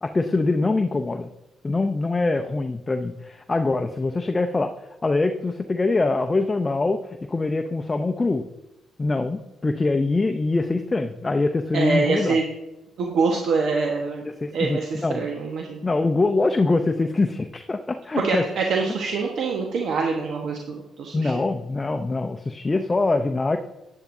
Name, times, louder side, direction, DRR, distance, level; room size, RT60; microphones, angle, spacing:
voice 1, 0.0-1.3 1.6-4.7 5.0-8.4 9.0-12.4 14.2-15.3 15.8-18.4 21.1-23.6, left 3 dB, 25° left, 6 dB, 0.6 m, -23 dB
voice 2, 11.7-12.5 13.0-14.2 14.5-15.8 18.2-21.3, right 4 dB, 65° right, 1 dB, 1.2 m, -25 dB
10.0 x 9.4 x 2.7 m, 0.97 s
supercardioid pair, 75°, 0 cm